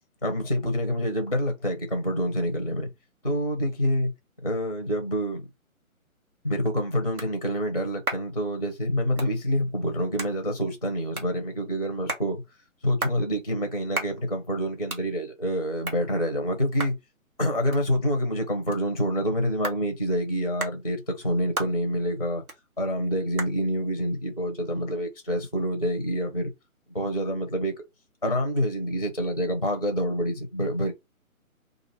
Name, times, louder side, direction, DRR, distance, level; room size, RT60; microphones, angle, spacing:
voice 1, 0.2-2.9 3.2-4.1 4.4-5.4 6.4-12.4 12.8-17.0 17.4-22.4 22.8-26.5 26.9-27.7 28.2-30.9, equal, 30° left, 0.4 m, -27 dB
sound 1, 6.3-25.6, right 2 dB, 85° right, 1.4 m, -40 dB
3.0 x 2.4 x 4.1 m
figure-of-eight pair, 140°, 43 cm